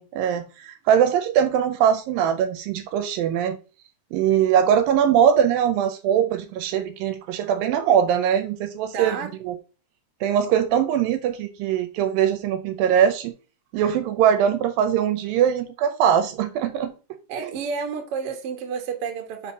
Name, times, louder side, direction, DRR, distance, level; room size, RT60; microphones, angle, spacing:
voice 1, 0.0-3.6 4.1-9.2 9.4-9.6 10.2-13.3 13.7-16.9 17.4-17.5, right 9 dB, 80° right, 2.3 m, -21 dB
voice 2, 8.9-9.3 17.3-19.5, right 6 dB, 60° right, 1.6 m, -30 dB
5.3 x 4.3 x 5.9 m
omnidirectional pair, 4.3 m